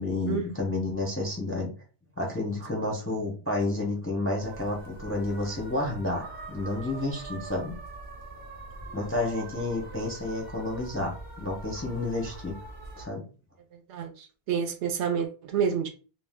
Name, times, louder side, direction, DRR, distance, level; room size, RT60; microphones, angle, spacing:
voice 1, 0.0-1.7 2.2-7.8 8.9-12.6 13.0-13.2, left 2 dB, 15° left, 0.4 m, -30 dB
sound 1, 4.3-13.1, right 2 dB, 45° right, 0.9 m, -43 dB
voice 2, 13.9-15.9, right 7 dB, 75° right, 0.9 m, -29 dB
2.4 x 2.2 x 3.4 m
omnidirectional pair, 1.2 m